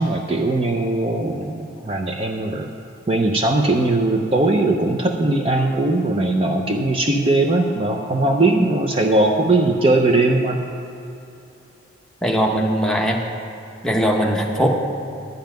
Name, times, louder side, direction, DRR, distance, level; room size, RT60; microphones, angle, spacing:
voice 1, 0.0-2.7 3.1-10.7, right 2 dB, 30° right, 2 dB, 0.6 m, -19 dB
voice 2, 12.2-13.2 13.8-14.7, equal, 5° left, -1 dB, 0.9 m, -20 dB
11.5 x 5.5 x 8.8 m, 2.8 s
head